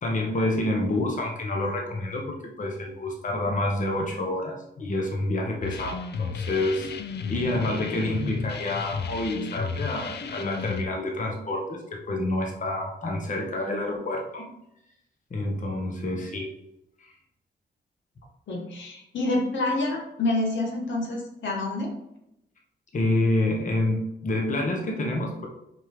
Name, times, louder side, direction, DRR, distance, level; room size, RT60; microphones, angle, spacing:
voice 1, 0.0-6.9 7.3-14.5 15.3-16.5 17.0-17.1 22.9-24.0 24.2-25.5, left 1 dB, 45° left, 1 dB, 1.3 m, -28 dB
sound 1, 5.6-10.8, left 5 dB, 65° left, 0.7 m, -33 dB
voice 2, 18.5-21.9, left 2 dB, 90° left, 0 dB, 1.6 m, -27 dB
6.3 x 5.3 x 3.7 m, 0.83 s
wide cardioid pair, 110°, 19 cm